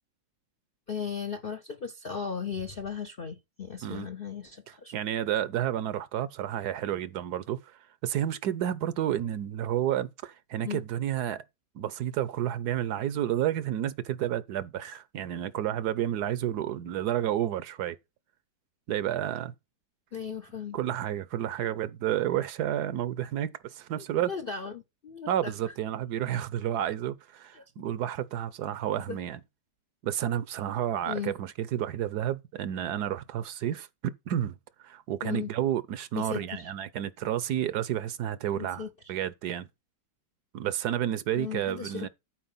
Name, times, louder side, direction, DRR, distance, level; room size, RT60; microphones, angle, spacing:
voice 1, 0.9-4.9 10.6-10.8 20.1-20.8 24.3-25.5 27.5-27.6 29.0-29.2 31.1-31.3 35.2-35.5 36.1-36.7 38.5-38.9 41.3-42.1, left 6 dB, 55° left, 0.6 m, -36 dB
voice 2, 4.7-7.7 8.0-11.4 11.7-18.0 18.9-19.5 20.7-24.3 25.3-29.4 30.0-34.6 34.8-39.7 40.5-42.1, right 11 dB, 70° right, 1.1 m, -31 dB
11.5 x 4.7 x 5.5 m
omnidirectional pair, 1.9 m